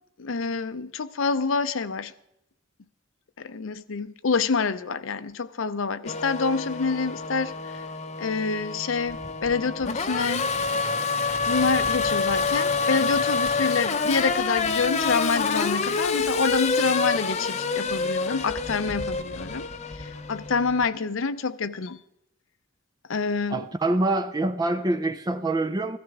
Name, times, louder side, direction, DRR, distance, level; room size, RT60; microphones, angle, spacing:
voice 1, 0.2-2.1 3.4-7.5 8.2-10.5 11.5-19.7 20.0-22.0 23.1-23.6, left 4 dB, 70° left, 0.6 m, -27 dB
Race car auto racing / Accelerating revving vroom, 6.0-20.8, left 4 dB, 35° left, 0.7 m, -27 dB
voice 2, 23.5-26.0, right 2 dB, 20° right, 0.5 m, -25 dB
15.5 x 13.5 x 3.6 m
head